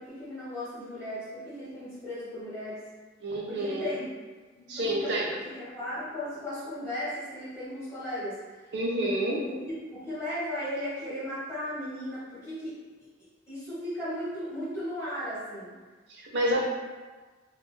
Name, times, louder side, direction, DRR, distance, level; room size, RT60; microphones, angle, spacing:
voice 1, 0.0-2.9 3.5-4.1 4.5-8.7 9.3-15.8, left 1 dB, 15° left, -11 dB, 1.0 m, -36 dB
voice 2, 3.2-3.9 4.7-5.3 8.7-9.4 16.1-16.6, right 1 dB, 60° right, -3 dB, 0.6 m, -28 dB
2.5 x 2.2 x 3.1 m, 1.3 s
head